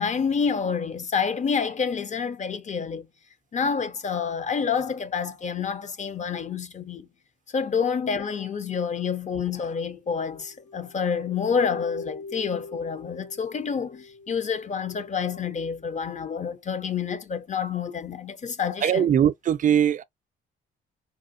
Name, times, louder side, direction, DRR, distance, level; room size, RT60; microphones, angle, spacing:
voice 1, 0.0-3.1 3.5-7.1 7.5-19.1, left 6 dB, 35° left, 0.6 m, -28 dB
sound 1, 10.2-15.9, left 3 dB, 80° left, 0.8 m, -43 dB
voice 2, 18.8-20.0, right 9 dB, 40° right, 0.4 m, -21 dB
3.6 x 2.2 x 2.6 m
cardioid pair, 90°, 20 cm